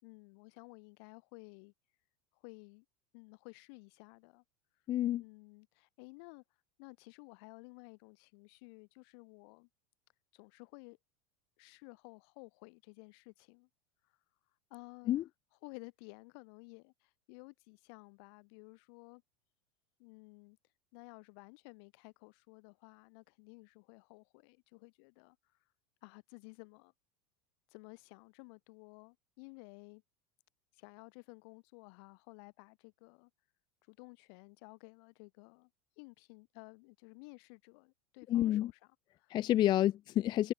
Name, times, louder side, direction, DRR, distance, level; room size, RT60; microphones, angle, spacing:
voice 1, 0.0-1.7 2.3-2.8 3.1-4.4 5.2-6.4 6.8-9.7 10.3-11.0 11.6-13.7 14.7-15.3 15.6-19.2 20.0-20.6 20.9-25.4 26.0-26.9 27.7-30.0 30.7-33.3 33.9-35.7 36.0-39.4, left 34 dB, 65° left, 2.9 m, -54 dB
voice 2, 4.9-5.2 15.1-15.2 38.3-38.7 39.3-40.5, left 13 dB, 30° left, 0.3 m, -29 dB
supercardioid pair, 110°, 14 cm